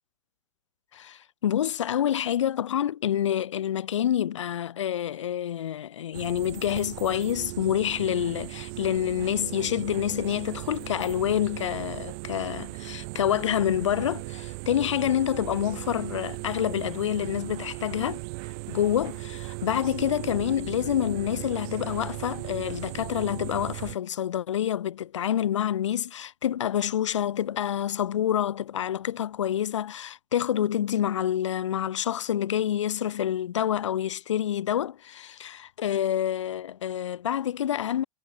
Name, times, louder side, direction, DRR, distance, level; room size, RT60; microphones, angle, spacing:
voice 1, 0.9-18.2 18.7-38.0, left 10 dB, 75° left, 1.2 m, -27 dB
sound 1, 6.1-24.0, right 34 dB, 50° right, 0.4 m, -37 dB
hypercardioid pair, 95°, 16 cm